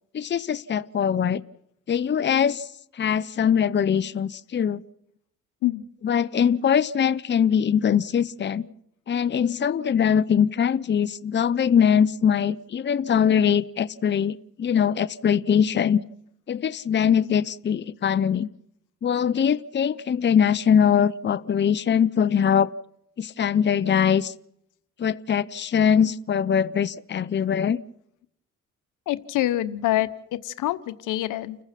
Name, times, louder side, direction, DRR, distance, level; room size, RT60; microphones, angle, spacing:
voice 1, 0.1-1.4 1.9-2.7 3.0-4.8 6.0-8.6 9.1-16.0 16.5-18.5 19.0-22.7 23.2-24.3 25.0-27.8, left 8 dB, 35° left, 14 dB, 0.8 m, -22 dB
voice 2, 29.1-31.6, left 15 dB, 85° left, 14 dB, 1.1 m, -27 dB
30.0 x 15.0 x 5.9 m, 0.75 s
cardioid pair, 90°, 30 cm